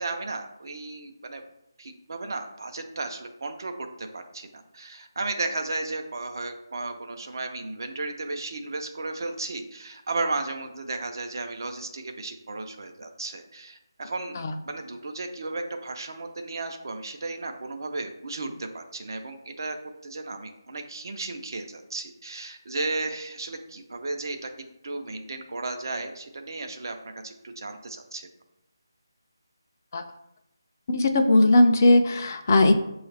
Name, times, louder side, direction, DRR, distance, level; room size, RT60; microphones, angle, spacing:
voice 1, 0.0-1.4 1.8-19.8 20.0-24.5 24.8-28.3, right 3 dB, 60° right, 5 dB, 0.6 m, -34 dB
voice 2, 30.9-32.7, left 2 dB, 40° left, 5 dB, 0.4 m, -19 dB
6.9 x 2.4 x 3.3 m, 0.88 s
figure-of-eight pair, 160°, 2 cm